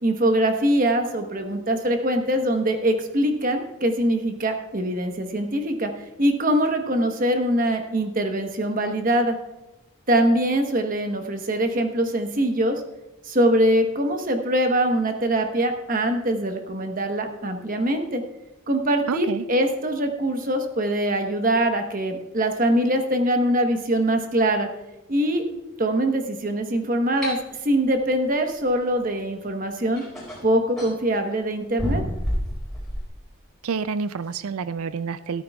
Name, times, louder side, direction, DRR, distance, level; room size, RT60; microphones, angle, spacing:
voice 1, 0.0-5.9 6.2-9.4 10.1-12.8 13.2-18.2 18.7-24.7 25.1-25.4 25.8-30.0 30.4-32.0, right 1 dB, 40° right, 5 dB, 1.1 m, -23 dB
voice 2, 19.1-19.4 33.6-35.4, right 5 dB, 90° right, 14 dB, 0.4 m, -28 dB
sound 1, 27.2-27.4 29.2-29.3 30.0-31.0 31.8-33.1, equal, ahead, 4.4 m, -29 dB
14.0 x 13.0 x 2.3 m, 1.0 s
head